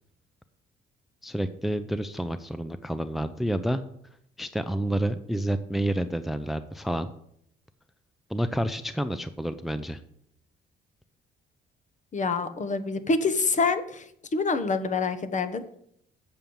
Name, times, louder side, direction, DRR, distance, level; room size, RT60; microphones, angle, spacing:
voice 1, 1.2-3.8 4.4-7.1 8.3-10.0, right 1 dB, ahead, 11 dB, 0.5 m, -29 dB
voice 2, 12.1-14.0 14.3-15.6, left 4 dB, 40° left, 10 dB, 1.1 m, -26 dB
7.7 x 7.2 x 7.0 m, 0.72 s
cardioid pair, 90°, 20 cm